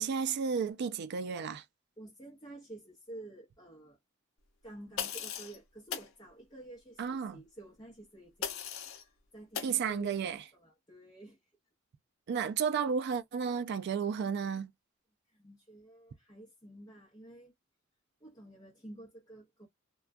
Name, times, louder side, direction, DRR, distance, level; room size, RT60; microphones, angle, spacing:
voice 1, 0.0-1.6 7.0-7.4 9.6-10.4 12.3-14.7, right 6 dB, 55° right, 0.3 m, -32 dB
voice 2, 2.0-4.0 4.6-11.4 15.3-17.5 18.2-19.7, right 2 dB, 20° left, 0.7 m, -51 dB
sound 1, 5.0-5.6 5.9-6.1 8.4-9.0 9.5-9.8, left 8 dB, 80° left, 0.6 m, -38 dB
2.2 x 2.2 x 2.4 m
head